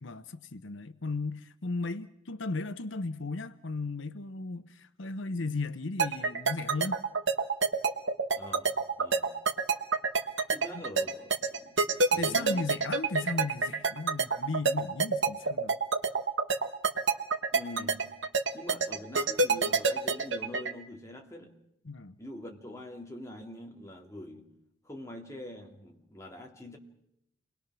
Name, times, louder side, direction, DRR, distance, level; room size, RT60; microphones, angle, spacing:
voice 1, 0.0-7.0 10.7-10.8 12.1-15.8 21.9-22.2, left 3 dB, 85° left, 0.9 m, -36 dB
sound 1, 6.0-20.7, right 4 dB, 75° right, 1.3 m, -26 dB
voice 2, 8.4-9.3 10.5-11.9 12.1-12.7 17.5-18.1 18.5-21.5 22.2-24.5 24.8-26.8, left 1 dB, 15° left, 2.3 m, -44 dB
28.0 x 21.0 x 6.1 m
head